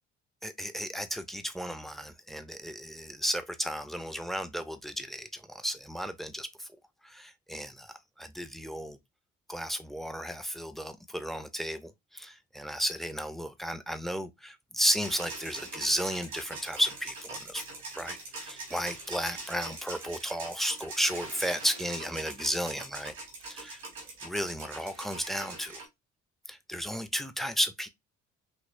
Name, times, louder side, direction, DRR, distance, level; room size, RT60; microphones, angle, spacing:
voice 1, 0.4-6.5 7.1-7.9 8.2-9.0 9.5-17.6 18.0-23.1 23.5-23.8 24.2-25.8 26.5-27.9, equal, ahead, 0.7 m, -33 dB
sound 1, 15.0-25.8, right 3 dB, 90° right, 1.7 m, -42 dB
5.2 x 3.0 x 2.5 m
figure-of-eight pair, 45°, 40 cm